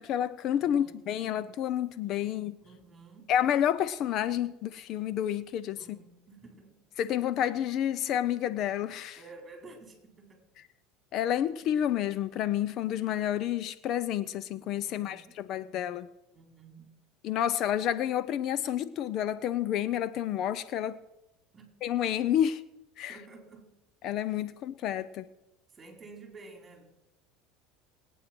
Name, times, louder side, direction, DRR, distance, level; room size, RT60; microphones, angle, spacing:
voice 1, 0.0-2.6 3.3-5.8 7.0-9.2 11.1-16.1 17.2-21.0 21.8-22.6 23.0-23.2 24.0-25.3, left 10 dB, 50° left, 0.6 m, -29 dB
voice 2, 0.6-1.0 2.6-3.3 5.8-6.9 9.2-10.4 14.8-15.3 16.3-17.0 21.5-21.7 23.1-23.8 25.7-26.8, right 3 dB, 20° right, 4.5 m, -51 dB
21.5 x 9.2 x 6.1 m
supercardioid pair, 120°, 0 cm